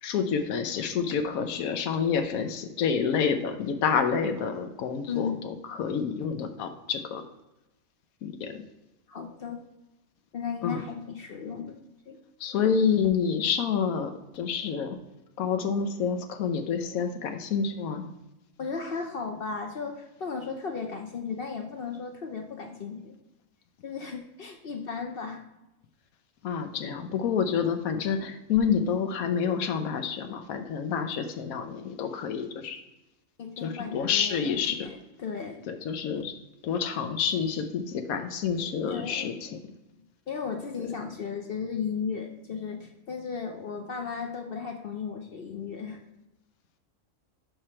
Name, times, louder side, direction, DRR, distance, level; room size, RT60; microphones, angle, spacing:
voice 1, 0.0-7.2 8.2-8.6 10.6-10.8 12.4-15.0 15.4-18.0 26.4-32.8 33.6-34.9 35.7-36.3 36.6-39.6, left 6 dB, 85° left, 7 dB, 1.1 m, -28 dB
voice 2, 5.1-5.4 9.1-9.6 10.3-11.8 12.1-12.2 18.6-23.2 23.8-25.4 33.4-35.6 38.9-39.3 40.3-46.0, left 5 dB, 55° left, 4 dB, 0.7 m, -35 dB
5.8 x 5.0 x 4.3 m, 0.95 s
omnidirectional pair, 1.5 m